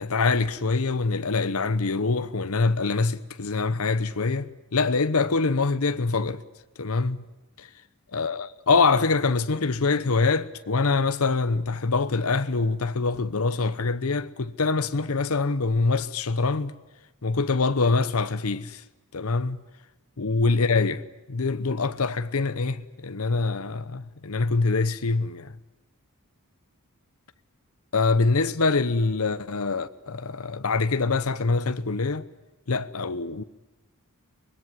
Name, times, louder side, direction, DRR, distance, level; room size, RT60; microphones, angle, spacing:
voice 1, 0.0-6.4 6.8-7.2 7.6-7.7 8.1-16.7 17.2-18.8 19.1-19.6 20.2-21.0 21.3-25.6 27.9-32.3 32.7-33.4, left 4 dB, 70° left, 0.9 m, -24 dB
25.0 x 21.0 x 9.6 m
head